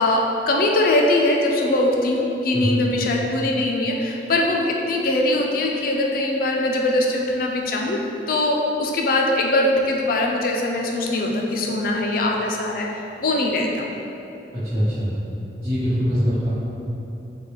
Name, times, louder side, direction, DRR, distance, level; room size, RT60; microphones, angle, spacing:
voice 1, 0.0-8.0 8.3-13.8, left 2 dB, 55° left, 0 dB, 0.4 m, -21 dB
voice 2, 14.5-15.1 15.6-16.5, equal, 35° right, -17 dB, 1.1 m, -22 dB
3.8 x 2.3 x 3.1 m, 3.0 s
head